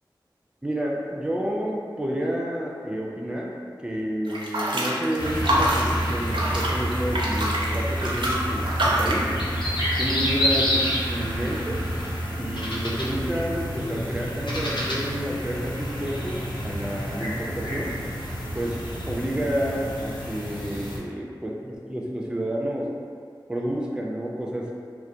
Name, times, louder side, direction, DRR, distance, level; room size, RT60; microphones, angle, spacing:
voice 1, 0.6-9.4 10.0-11.8 12.4-17.9 18.5-21.5 21.9-22.9 23.5-24.7, equal, 10° right, -2 dB, 0.3 m, -30 dB
sound 1, 4.3-9.3, right 1 dB, 75° right, 0.4 m, -26 dB
sound 2, 5.2-21.0, equal, 70° left, 0.5 m, -28 dB
2.3 x 2.1 x 2.7 m, 2.2 s
wide cardioid pair, 55°, 8 cm